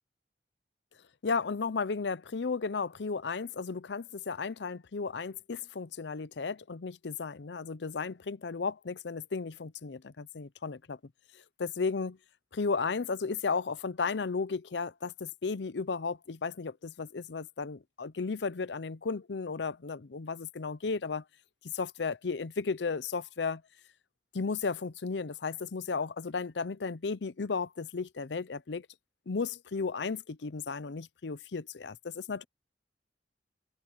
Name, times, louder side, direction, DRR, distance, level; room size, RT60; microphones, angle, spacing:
voice 1, 1.2-11.0 11.6-12.2 12.5-21.2 21.7-23.6 24.3-28.9 29.3-32.4, left 4 dB, 75° left, 0.6 m, -34 dB
open air
head